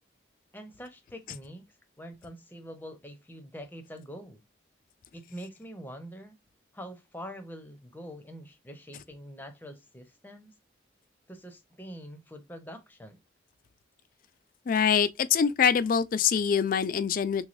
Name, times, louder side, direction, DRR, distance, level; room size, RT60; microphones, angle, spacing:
voice 1, 0.5-1.6 2.0-4.4 5.1-6.4 6.7-10.5 11.3-13.2, equal, 10° left, 0.6 m, -44 dB
voice 2, 14.7-17.5, left 7 dB, 45° left, 0.3 m, -24 dB
3.5 x 3.1 x 2.5 m
head